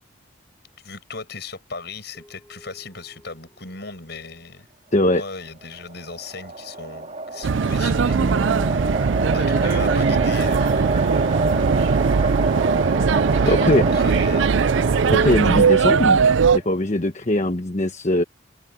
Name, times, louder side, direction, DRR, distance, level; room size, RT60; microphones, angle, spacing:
voice 1, 0.8-4.7 5.1-8.6 9.3-11.3 13.3-14.5, left 4 dB, 60° left, 7.9 m, -37 dB
sound 1, 2.1-4.7 5.0-5.1 7.3-11.0, equal, 5° left, 6.0 m, -41 dB
voice 2, 4.9-5.2 13.5-13.8 15.1-16.2 16.5-18.2, left 1 dB, 40° left, 1.2 m, -20 dB
sound 2, 5.7-16.6, right 2 dB, 35° right, 2.5 m, -27 dB
sound 3, 7.4-16.6, right 5 dB, 75° right, 0.5 m, -19 dB
head